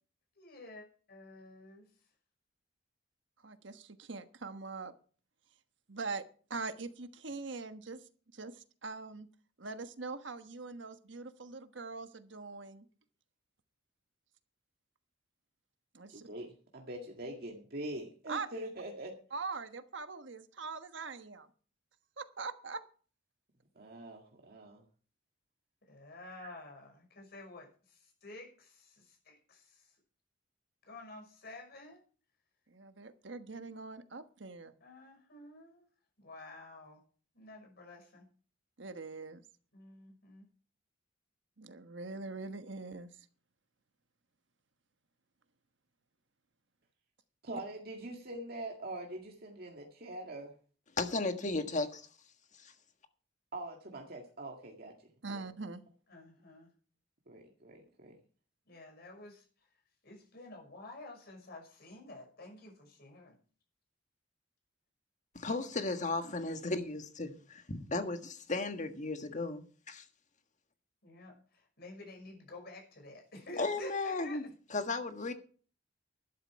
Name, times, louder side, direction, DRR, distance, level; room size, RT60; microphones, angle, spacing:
voice 1, 0.4-1.9 25.8-30.0 30.9-32.0 34.8-35.9 36.2-37.0 37.3-38.3 39.7-40.5 56.1-56.7 58.7-59.7 60.0-63.3 71.0-74.5, left 2 dB, 55° left, 5.7 m, -51 dB
voice 2, 3.4-4.9 5.9-6.2 6.5-8.0 8.3-9.3 9.6-12.8 15.9-16.3 18.3-18.5 19.3-21.5 22.2-22.8 32.7-34.7 38.8-39.4 41.6-43.1 55.2-55.8, right 4 dB, 70° right, 1.3 m, -42 dB
voice 3, 16.1-19.2 23.7-24.9 26.4-26.5 47.4-50.6 53.5-55.5 57.3-58.2, right 1 dB, 55° right, 2.0 m, -44 dB
voice 4, 51.0-52.1 52.6-52.7 65.3-70.0 73.6-74.4 74.7-75.3, left 3 dB, 40° left, 1.6 m, -35 dB
12.0 x 11.5 x 4.7 m
head